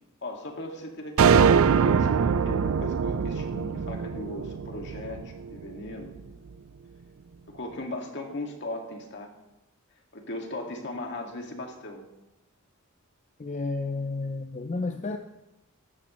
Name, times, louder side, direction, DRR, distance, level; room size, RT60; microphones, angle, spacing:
voice 1, 0.2-6.2 7.5-9.3 10.1-12.0, left 1 dB, 55° left, 2 dB, 2.0 m, -38 dB
sound 1, 1.2-5.6, right 6 dB, 75° right, 0.4 m, -23 dB
voice 2, 13.4-15.2, left 3 dB, 35° left, 6 dB, 0.6 m, -31 dB
15.0 x 12.5 x 3.1 m, 0.94 s
head